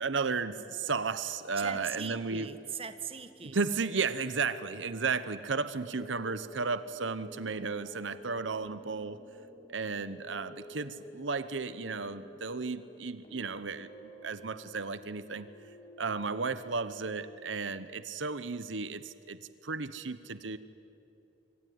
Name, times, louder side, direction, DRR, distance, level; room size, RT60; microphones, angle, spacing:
voice 1, 0.0-2.5 3.5-9.2 9.7-15.5 16.0-20.6, right 4 dB, 80° right, 13 dB, 0.9 m, -34 dB
voice 2, 1.5-3.6, right 6 dB, 30° right, 10 dB, 1.4 m, -40 dB
sound 1, 5.9-17.3, left 1 dB, 30° left, 5.7 m, -52 dB
26.0 x 24.5 x 9.4 m, 2.9 s
head